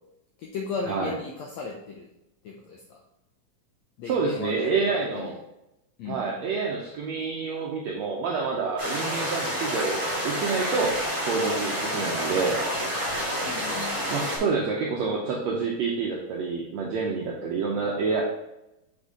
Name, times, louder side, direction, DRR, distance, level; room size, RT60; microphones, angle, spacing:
voice 1, 0.4-2.1 2.4-3.0 4.0-5.3 6.0-6.4 13.4-14.0, left 5 dB, 90° left, -1 dB, 1.5 m, -36 dB
voice 2, 4.1-5.4 6.1-9.9 10.2-10.9 11.3-12.6 14.1-18.2, right 4 dB, 85° right, -2 dB, 1.5 m, -28 dB
sound 1, 8.8-14.4, equal, 20° right, 1.6 m, -29 dB
6.7 x 4.4 x 3.7 m, 0.89 s
omnidirectional pair, 4.0 m